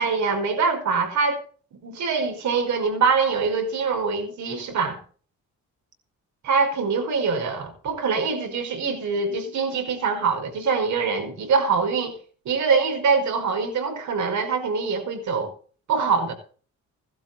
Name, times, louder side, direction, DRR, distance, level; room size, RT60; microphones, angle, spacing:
voice 1, 0.0-1.4 1.7-5.0 6.4-12.2 12.5-15.5 15.9-16.3, right 5 dB, 70° right, 5.3 m, -24 dB
16.5 x 12.0 x 4.2 m
cardioid pair, 90°, 30 cm